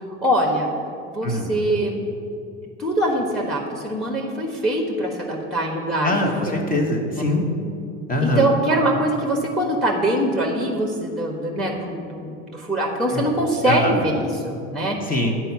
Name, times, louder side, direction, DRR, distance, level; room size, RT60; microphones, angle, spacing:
voice 1, 0.2-0.7 1.1-2.0 2.8-6.3 7.1-7.2 8.2-15.0, right 1 dB, ahead, 1 dB, 1.3 m, -23 dB
voice 2, 6.0-7.5 8.1-8.5 13.1-13.3 13.7-14.0 15.1-15.4, left 1 dB, 25° left, 0 dB, 1.7 m, -23 dB
8.9 x 4.7 x 7.2 m, 2.5 s
hypercardioid pair, 80°, 37 cm